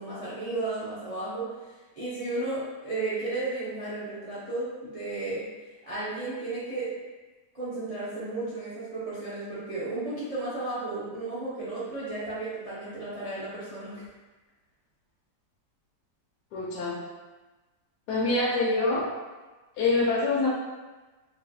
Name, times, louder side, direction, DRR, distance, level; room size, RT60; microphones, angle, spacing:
voice 1, 0.0-5.4 5.8-6.9 7.5-14.0, right 2 dB, 55° right, -10 dB, 0.4 m, -34 dB
voice 2, 16.5-17.0 18.1-19.2 19.8-20.5, left 3 dB, 75° left, -6 dB, 1.1 m, -25 dB
3.9 x 2.2 x 2.6 m, 1.2 s
omnidirectional pair, 1.8 m